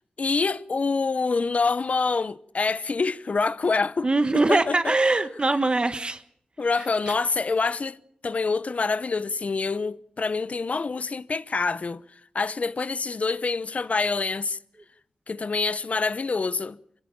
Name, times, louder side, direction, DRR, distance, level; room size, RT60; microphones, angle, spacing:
voice 1, 0.2-4.1 4.3-5.0 6.6-12.0 12.3-14.6 15.3-16.8, left 4 dB, 55° left, 0.8 m, -26 dB
voice 2, 4.0-6.2, right 2 dB, 35° right, 1.4 m, -22 dB
24.0 x 16.5 x 8.7 m
cardioid pair, 55°, 3 cm